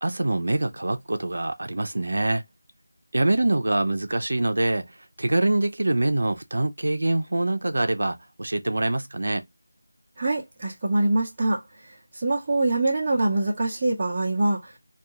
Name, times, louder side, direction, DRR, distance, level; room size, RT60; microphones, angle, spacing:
voice 1, 0.0-2.4 3.1-9.4, right 2 dB, 65° right, 0.6 m, -25 dB
voice 2, 10.2-11.6 12.2-14.7, right 2 dB, 15° right, 0.8 m, -24 dB
3.5 x 2.4 x 2.8 m
figure-of-eight pair, 175°, 0 cm